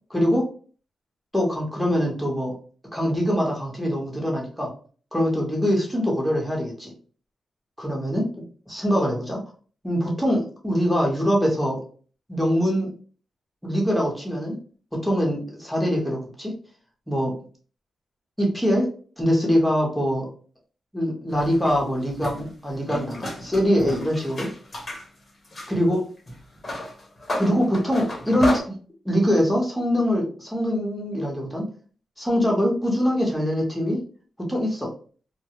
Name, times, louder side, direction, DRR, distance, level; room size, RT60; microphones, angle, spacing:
voice 1, 0.1-0.4 1.3-2.5 2.9-4.7 5.1-6.9 7.8-8.3 8.7-9.4 9.8-11.8 12.3-12.9 13.6-14.6 15.0-16.5 17.1-17.3 18.4-18.9 19.2-20.3 20.9-24.5 25.7-26.0 27.4-28.7 29.0-31.6 32.2-34.0 34.4-34.9, equal, ahead, -2 dB, 0.9 m, -23 dB
sound 1, 21.3-25.0 25.4-28.6, left 1 dB, 35° left, 0.9 m, -32 dB
2.2 x 2.0 x 2.8 m, 0.42 s
cardioid pair, 75°, 0 cm